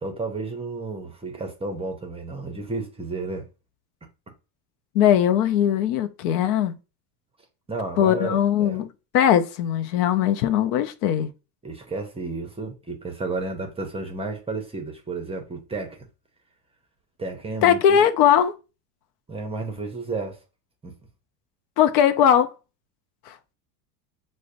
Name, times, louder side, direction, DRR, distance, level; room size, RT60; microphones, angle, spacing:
voice 1, 0.0-3.4 7.7-8.8 11.6-16.1 17.2-18.1 19.3-20.4 20.8-20.9, right 3 dB, 10° right, 0.5 m, -32 dB
voice 2, 4.9-6.7 8.0-11.3 17.6-18.5 21.8-22.5 23.3-23.4, left 9 dB, 70° left, 0.6 m, -20 dB
6.2 x 2.1 x 2.5 m
supercardioid pair, 115°, 48 cm